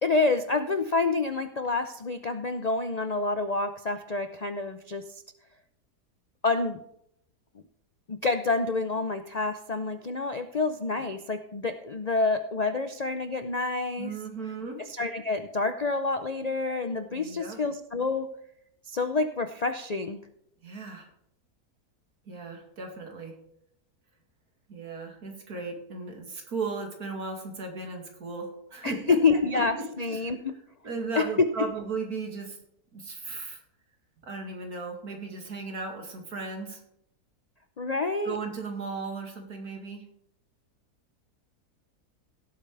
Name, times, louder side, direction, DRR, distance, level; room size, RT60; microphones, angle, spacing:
voice 1, 0.0-5.0 6.4-6.8 8.1-14.1 14.9-18.3 18.9-20.2 28.8-30.5 31.1-31.5 37.8-38.4, left 3 dB, 90° left, 8 dB, 0.3 m, -28 dB
voice 2, 14.0-14.8 17.1-17.6 20.6-21.1 22.3-23.3 24.7-29.2 29.5-29.7 30.1-30.3 30.8-32.6 32.9-33.6 34.2-36.8 38.2-40.0, right 3 dB, 65° right, 2 dB, 2.7 m, -36 dB
17.0 x 8.5 x 3.4 m, 0.75 s
omnidirectional pair, 1.7 m